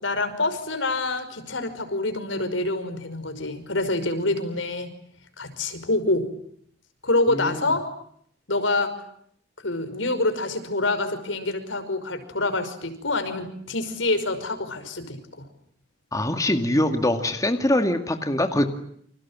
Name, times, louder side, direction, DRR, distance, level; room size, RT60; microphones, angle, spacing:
voice 1, 0.0-4.9 5.4-6.3 7.0-7.8 8.5-9.0 9.6-15.4, left 2 dB, 80° left, 9 dB, 5.6 m, -26 dB
voice 2, 7.3-7.6 16.1-18.7, left 1 dB, 20° left, 6 dB, 2.2 m, -23 dB
30.0 x 26.5 x 7.5 m, 0.67 s
head